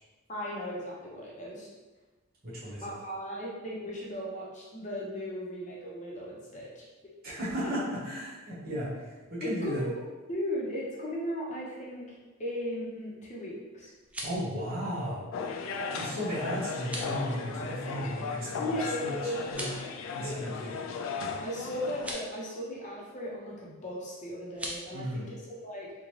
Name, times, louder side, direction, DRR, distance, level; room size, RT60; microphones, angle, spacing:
voice 1, 0.3-1.7 2.8-6.8 7.6-7.7 9.4-9.9 10.3-12.1 12.4-13.9 15.7-15.9 18.6-19.6 20.2-20.5 21.4-25.9, equal, 35° left, -4 dB, 0.7 m, -37 dB
voice 2, 2.4-2.9 7.2-9.1 9.4-9.8 14.2-15.2 15.9-18.7 19.0-19.7 20.1-20.7 24.9-25.2, equal, 50° right, -8 dB, 1.3 m, -35 dB
sound 1, 13.9-14.5 16.8-17.2 19.4-19.9 21.9-22.3 24.5-24.8, right 1 dB, 5° right, 0.4 m, -39 dB
sound 2, 15.3-22.1, left 5 dB, 70° left, 0.3 m, -36 dB
3.8 x 2.2 x 3.1 m, 1.2 s
head